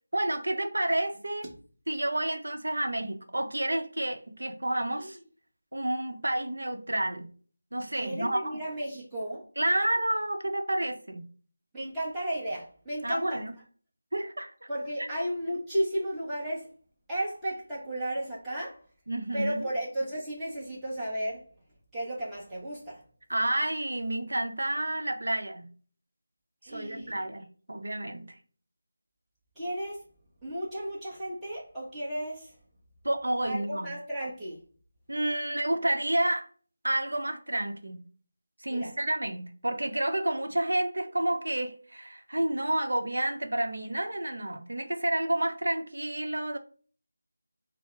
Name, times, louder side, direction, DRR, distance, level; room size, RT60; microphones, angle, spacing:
voice 1, 0.1-1.5 1.9-5.2 5.7-7.3 7.7-8.5 9.6-11.3 13.0-13.5 14.1-14.7 15.0-15.1 19.1-19.6 23.3-25.7 26.7-28.3 33.0-33.9 35.1-36.5 36.8-38.0 38.6-46.6, right 1 dB, 80° right, 0.7 m, -30 dB
voice 2, 7.9-9.4 11.7-13.4 14.7-16.7 17.1-18.8 19.3-21.4 21.9-23.0 26.6-27.2 29.5-30.0 30.4-32.5 33.5-34.6 38.7-38.9, right 1 dB, 5° right, 1.1 m, -34 dB
4.7 x 2.0 x 3.3 m
figure-of-eight pair, 170°, 0 cm